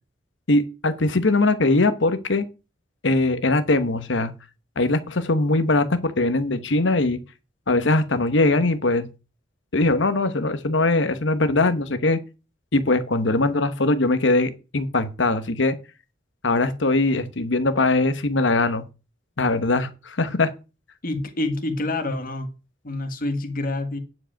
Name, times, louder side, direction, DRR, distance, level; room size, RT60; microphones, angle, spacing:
voice 1, 0.5-2.5 3.0-4.3 4.8-7.2 7.7-9.1 9.7-12.2 12.7-15.8 16.4-18.9 19.4-20.5, left 2 dB, 70° left, 1.0 m, -21 dB
voice 2, 21.0-22.5 22.8-24.0, left 2 dB, 45° left, 1.6 m, -27 dB
9.6 x 5.1 x 6.4 m
head